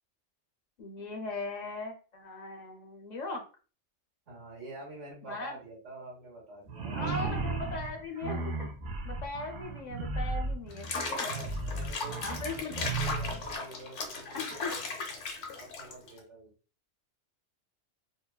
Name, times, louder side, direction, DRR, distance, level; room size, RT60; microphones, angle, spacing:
voice 1, 0.8-3.4 5.3-5.6 6.9-8.4 9.0-11.3 12.2-13.1 14.3-14.7, left 3 dB, 45° left, 2 dB, 0.6 m, -39 dB
voice 2, 4.3-7.1 11.2-14.8 15.5-16.5, right 2 dB, 80° right, -2 dB, 1.5 m, -47 dB
sound 1, 6.7-13.5, right 3 dB, 60° right, 0.7 m, -35 dB
Water / Bathtub (filling or washing), 10.7-16.2, left 3 dB, 75° left, 0.9 m, -37 dB
2.9 x 2.2 x 2.2 m, 0.37 s
omnidirectional pair, 1.2 m